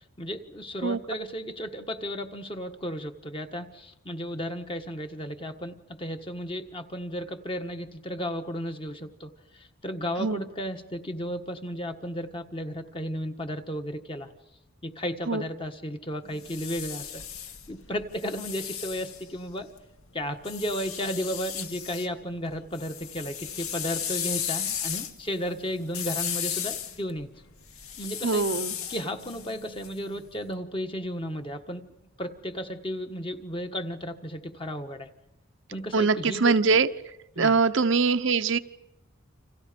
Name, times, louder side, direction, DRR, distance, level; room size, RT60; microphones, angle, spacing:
voice 1, 0.0-14.3 14.8-17.2 17.7-19.7 20.1-27.3 28.0-28.4 28.9-31.8 32.2-35.1 35.7-36.8 37.3-37.6, equal, 25° left, 6 dB, 1.5 m, -34 dB
sound 1, 16.2-19.8 20.4-22.1 22.4-30.4, left 9 dB, 85° left, 2.0 m, -35 dB
voice 2, 28.2-28.7 35.9-36.9 37.4-38.6, right 4 dB, 60° right, 9 dB, 0.8 m, -23 dB
29.5 x 26.5 x 5.2 m, 0.95 s
head